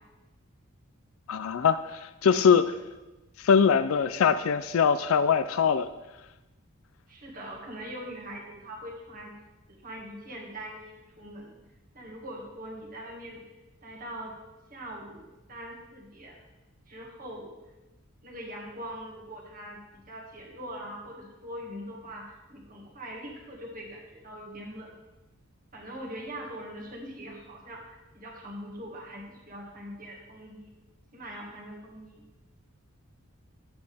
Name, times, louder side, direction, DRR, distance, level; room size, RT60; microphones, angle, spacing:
voice 1, 1.3-2.7 3.4-5.9, left 6 dB, 70° left, 12 dB, 0.4 m, -22 dB
voice 2, 7.1-9.3 9.7-11.6 11.9-13.4 13.8-14.4 14.7-16.4 16.9-17.5 18.2-24.9 25.7-30.7 31.1-32.2, equal, 40° right, -1 dB, 1.9 m, -42 dB
9.8 x 8.1 x 3.5 m, 1.1 s
head